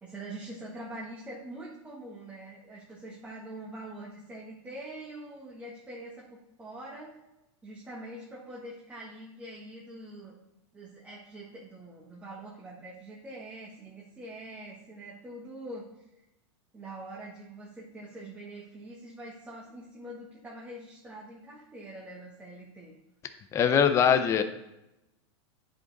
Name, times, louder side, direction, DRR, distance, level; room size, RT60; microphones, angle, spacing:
voice 1, 0.0-7.2 7.6-10.3 10.7-15.8 16.7-22.9, right 1 dB, 10° right, -5 dB, 1.5 m, -44 dB
voice 2, 23.5-24.4, left 7 dB, 20° left, 9 dB, 0.5 m, -22 dB
9.7 x 5.1 x 4.0 m, 0.92 s
supercardioid pair, 145°, 15 cm